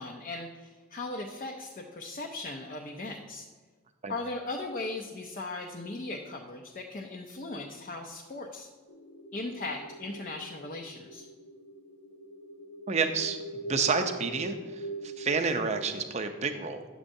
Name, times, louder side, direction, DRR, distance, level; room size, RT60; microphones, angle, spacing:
voice 1, 0.0-3.4 4.1-8.7 9.3-11.2, left 2 dB, 40° left, 2 dB, 0.6 m, -38 dB
sound 1, 8.9-15.8, right 1 dB, 85° left, 0.7 m, -42 dB
voice 2, 12.9-13.4 13.7-16.8, right 5 dB, 30° right, 7 dB, 0.5 m, -29 dB
9.9 x 7.3 x 2.7 m, 1.4 s
head